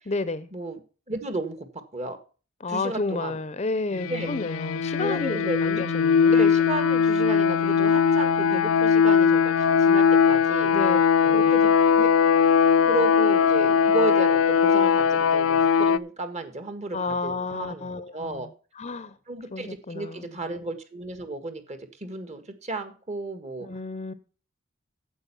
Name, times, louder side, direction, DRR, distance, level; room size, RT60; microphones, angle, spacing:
voice 1, 0.1-0.5 2.6-6.4 10.7-11.5 16.9-18.5 18.8-19.1 19.5-20.3 23.6-24.1, left 3 dB, 35° left, 0.7 m, -31 dB
voice 2, 1.1-1.7 1.9-2.2 2.7-3.4 4.1-4.4 5.0-5.8 6.3-10.7 11.3-11.7 12.0-17.9 18.1-18.5 19.3-23.7, right 2 dB, 35° right, 1.5 m, -33 dB
sound 1, 3.9-16.0, left 6 dB, 85° left, 0.5 m, -20 dB
9.3 x 7.8 x 5.5 m
head